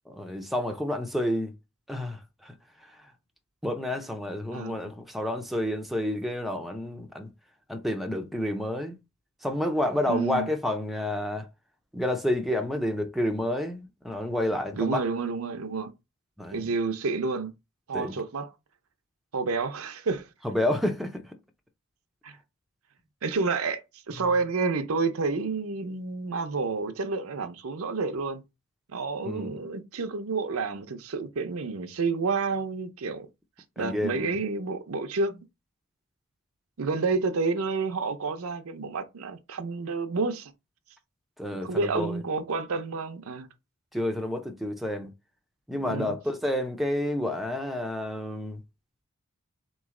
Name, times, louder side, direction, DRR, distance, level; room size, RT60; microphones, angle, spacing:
voice 1, 0.1-1.5 1.9-2.5 2.8-3.1 3.6-7.3 7.7-9.0 9.4-11.5 11.9-15.0 16.4-16.6 17.9-18.2 20.4-21.4 29.3-29.6 33.8-34.3 41.4-42.2 43.9-45.1 45.7-48.6, left 1 dB, ahead, 0.5 m, -30 dB
voice 2, 4.5-4.9 10.1-10.5 14.7-15.9 16.5-17.5 17.9-18.5 19.3-20.3 22.2-22.4 23.2-28.4 28.9-33.3 33.8-35.4 36.8-40.5 41.6-43.5 45.9-46.1, right 4 dB, 75° right, 0.6 m, -29 dB
3.8 x 3.1 x 3.7 m
head